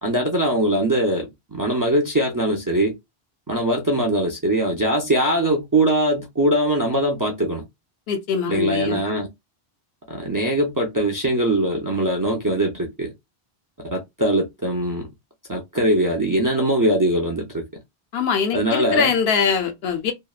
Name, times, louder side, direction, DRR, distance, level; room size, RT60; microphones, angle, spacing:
voice 1, 0.0-2.9 3.5-7.6 8.5-9.3 10.1-13.1 13.8-15.1 15.5-17.6 18.5-19.1, right 1 dB, 30° right, 0.4 m, -21 dB
voice 2, 8.1-9.0 18.1-20.1, left 6 dB, 75° left, 0.9 m, -22 dB
2.8 x 2.1 x 2.3 m
omnidirectional pair, 1.1 m